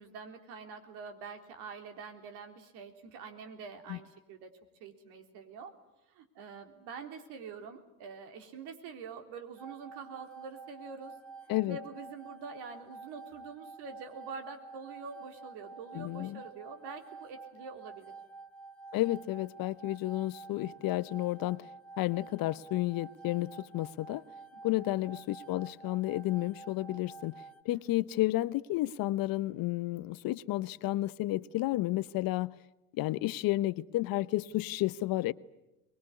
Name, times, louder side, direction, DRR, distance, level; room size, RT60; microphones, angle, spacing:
voice 1, 0.0-4.5 4.8-5.7 6.1-11.1 11.6-18.1 24.5-24.9 27.7-27.9, right 5 dB, 65° right, 3.7 m, -46 dB
sound 1, 9.6-27.6, right 4 dB, ahead, 1.4 m, -50 dB
voice 2, 15.9-16.4 18.9-21.6 22.0-24.2 24.6-27.3 27.6-32.5 33.0-35.3, left 17 dB, 55° left, 0.9 m, -31 dB
23.0 x 21.5 x 9.8 m
hypercardioid pair, 75°, 43 cm